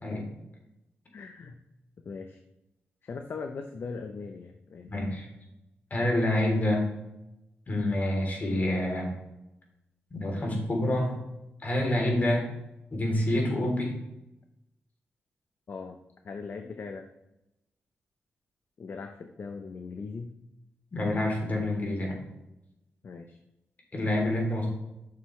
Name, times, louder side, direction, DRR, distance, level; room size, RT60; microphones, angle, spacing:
voice 1, 1.1-1.6 2.0-2.4 3.0-4.9 15.7-16.0 16.2-17.1 18.8-20.3 23.0-23.4, left 4 dB, 55° left, 6 dB, 0.7 m, -39 dB
voice 2, 4.8-5.3 5.9-6.8 7.7-9.1 10.1-11.1 11.6-12.4 12.9-13.9 20.9-22.2 23.9-24.7, left 1 dB, 40° left, 0 dB, 3.2 m, -27 dB
9.5 x 6.6 x 3.2 m, 0.91 s
cardioid pair, 90°, 4 cm